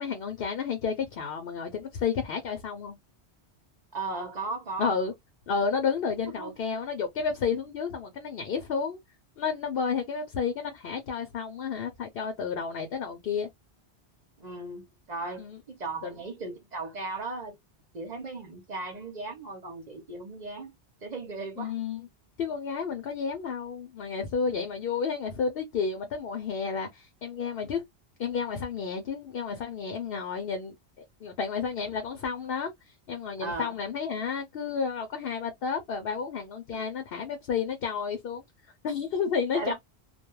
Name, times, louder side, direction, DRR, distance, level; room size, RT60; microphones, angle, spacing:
voice 1, 0.0-3.0 4.8-5.1 5.5-9.0 9.4-13.5 15.4-15.6 16.0-16.1 21.6-22.1 22.4-27.8 28.2-30.7 31.2-38.4 38.8-39.7, left 6 dB, 65° left, 0.8 m, -31 dB
voice 2, 3.9-4.9 6.4-6.5 14.4-17.5 17.9-20.7 21.0-21.7 33.4-33.7 36.7-36.8 39.5-39.7, right 3 dB, 40° right, 0.9 m, -36 dB
2.3 x 2.2 x 3.0 m
omnidirectional pair, 1.1 m